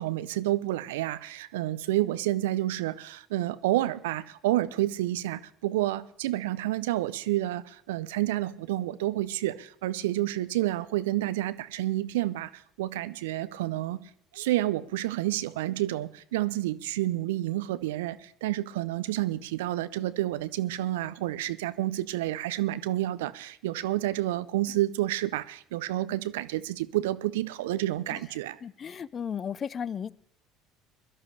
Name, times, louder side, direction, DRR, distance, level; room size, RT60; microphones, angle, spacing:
voice 1, 0.0-14.0 14.3-28.6, right 15 dB, 70° right, 0.6 m, -29 dB
voice 2, 28.6-30.1, left 7 dB, 35° left, 0.5 m, -34 dB
22.0 x 12.0 x 3.3 m
figure-of-eight pair, 65°, 0 cm